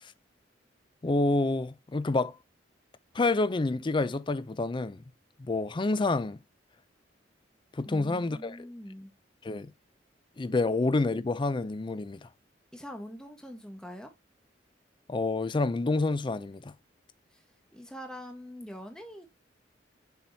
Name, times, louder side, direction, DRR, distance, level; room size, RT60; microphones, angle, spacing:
voice 1, 1.0-2.4 3.1-5.0 5.4-6.4 7.7-8.6 9.4-9.7 10.4-12.2 15.1-16.7, left 3 dB, 25° left, 0.4 m, -28 dB
voice 2, 7.8-9.1 12.7-14.1 17.3-17.4 17.7-19.3, equal, 5° left, 1.1 m, -43 dB
7.1 x 6.0 x 2.6 m
head